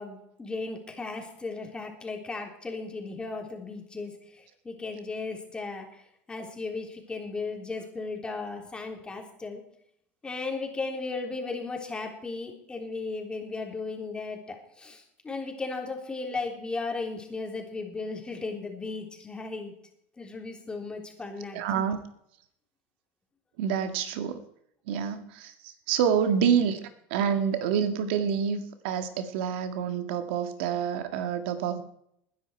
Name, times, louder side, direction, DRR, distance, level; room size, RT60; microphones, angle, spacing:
voice 1, 0.0-6.0 6.3-9.6 10.2-19.7 20.2-21.9, left 3 dB, 15° left, 2 dB, 3.5 m, -36 dB
voice 2, 21.5-22.0 23.6-24.4 24.9-31.8, right 7 dB, 80° right, 8 dB, 1.9 m, -27 dB
20.5 x 10.5 x 4.6 m, 0.74 s
supercardioid pair, 120°, 6 cm